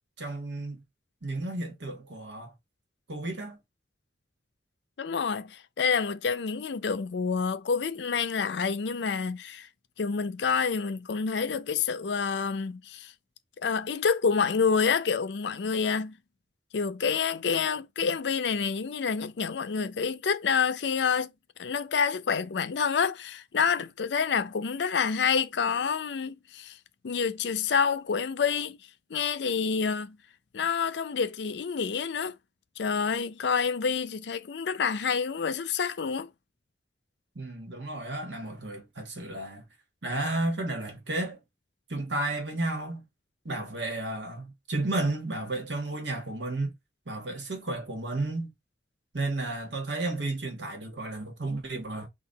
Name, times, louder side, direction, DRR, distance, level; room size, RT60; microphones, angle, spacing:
voice 1, 0.2-0.8 1.2-2.5 3.1-3.6 37.3-39.6 40.0-41.4 41.9-43.0 43.4-46.7 47.1-48.5 49.1-52.1, right 2 dB, 80° right, 1.5 m, -32 dB
voice 2, 5.0-9.7 10.0-13.1 13.6-16.2 16.7-21.3 21.6-26.8 27.0-28.8 29.1-30.2 30.5-32.3 32.8-36.3, left 6 dB, 70° left, 0.5 m, -28 dB
4.0 x 2.4 x 3.9 m
head